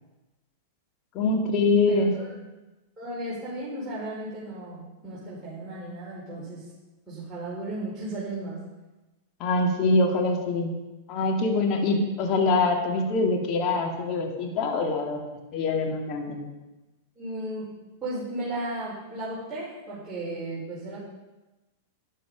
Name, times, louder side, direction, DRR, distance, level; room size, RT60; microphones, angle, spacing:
voice 1, 1.1-2.1 9.4-10.8 11.1-15.2 15.5-16.4, left 3 dB, 40° left, 2 dB, 2.2 m, -24 dB
voice 2, 1.9-2.3 3.0-6.7 7.1-8.6 17.2-21.0, right 1 dB, 10° right, -10 dB, 5.1 m, -35 dB
12.0 x 10.0 x 5.2 m, 1.1 s
figure-of-eight pair, 100°, 0 cm